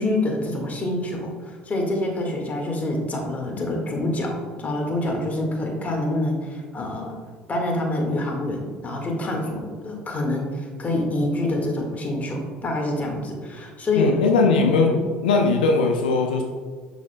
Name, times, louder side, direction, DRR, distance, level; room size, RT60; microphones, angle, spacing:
voice 1, 0.0-7.2 7.5-14.1 14.9-15.0, left 1 dB, 35° left, 1 dB, 1.8 m, -26 dB
voice 2, 14.0-14.9 15.2-16.4, left 4 dB, 90° left, 2 dB, 0.5 m, -19 dB
6.9 x 6.3 x 2.3 m, 1.5 s
hypercardioid pair, 65°, 5 cm